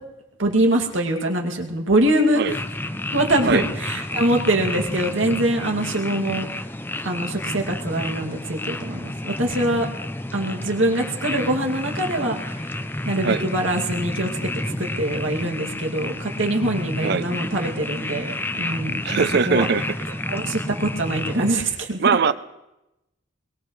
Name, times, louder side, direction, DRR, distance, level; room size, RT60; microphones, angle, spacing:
voice 1, 0.4-2.6 3.1-6.4 7.0-9.9 10.3-12.7 13.1-14.5 14.8-19.7 20.3-22.1, right 1 dB, 85° right, 1 dB, 2.5 m, -23 dB
sound 1, 2.5-21.5, left 1 dB, 10° left, 0.5 m, -30 dB
voice 2, 19.0-19.8 22.0-22.3, right 5 dB, 55° right, 14 dB, 0.5 m, -20 dB
22.5 x 19.5 x 3.2 m, 0.94 s
head